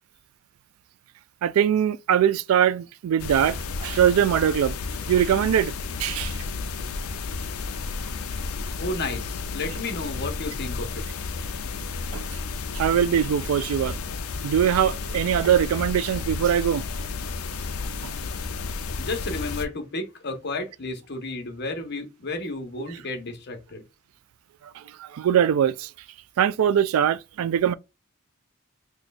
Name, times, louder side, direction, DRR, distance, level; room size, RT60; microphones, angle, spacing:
voice 1, 1.4-4.7 5.1-5.7 6.0-6.4 12.1-12.2 12.7-14.0 14.4-16.9 18.0-18.1 24.8-25.9 26.4-27.7, right 9 dB, 80° right, 0.3 m, -22 dB
sound 1, 3.2-19.7, left 4 dB, 85° left, 0.5 m, -32 dB
voice 2, 8.8-11.0 19.0-23.8, left 2 dB, 55° left, 0.9 m, -32 dB
3.0 x 2.4 x 4.0 m
head